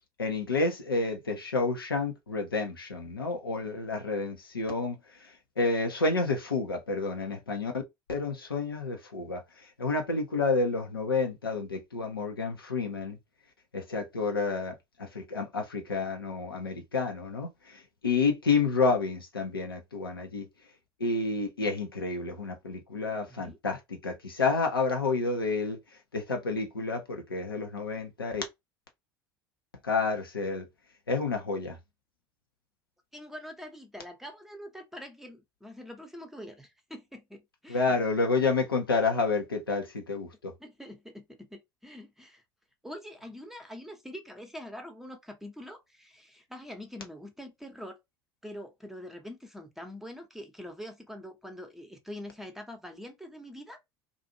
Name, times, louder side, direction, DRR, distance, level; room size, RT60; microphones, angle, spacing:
voice 1, 0.2-7.7 8.1-9.4 9.8-13.2 13.7-20.5 21.0-25.8 26.1-28.4 29.8-30.7 31.1-31.8 37.7-40.5, left 4 dB, 85° left, 0.6 m, -29 dB
voice 2, 33.1-38.0 40.6-42.4 42.8-48.0 48.4-53.8, left 1 dB, 5° right, 0.7 m, -44 dB
2.5 x 2.4 x 2.7 m
figure-of-eight pair, 65°, 12 cm